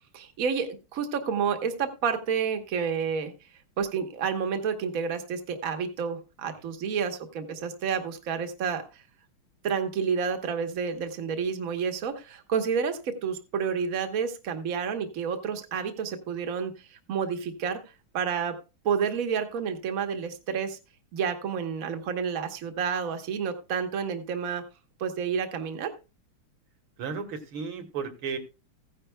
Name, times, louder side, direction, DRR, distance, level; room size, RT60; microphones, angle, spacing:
voice 1, 0.1-3.3 3.8-9.0 9.6-17.8 18.1-18.6 18.8-20.8 21.1-24.6 25.0-25.9, right 6 dB, 45° right, 6 dB, 1.4 m, -30 dB
voice 2, 27.0-28.4, right 6 dB, 75° right, 6 dB, 2.3 m, -34 dB
15.5 x 10.0 x 2.2 m, 0.29 s
omnidirectional pair, 2.3 m